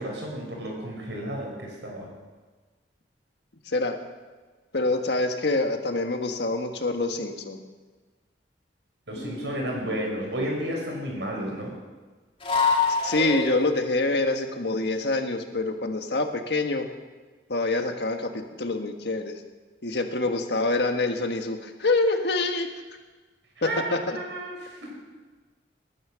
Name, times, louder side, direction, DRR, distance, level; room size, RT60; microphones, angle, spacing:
voice 1, 0.0-2.1 9.1-11.7 23.6-25.0, right 1 dB, 85° right, -1 dB, 5.8 m, -32 dB
voice 2, 4.7-7.6 13.0-16.9 17.5-18.3 18.6-19.3 19.8-22.7 23.6-24.2, left 2 dB, 70° left, 5 dB, 1.6 m, -26 dB
sound 1, 9.2-10.2 12.4-13.8, left 4 dB, 35° left, 2.5 m, -27 dB
20.0 x 10.5 x 6.4 m, 1.3 s
head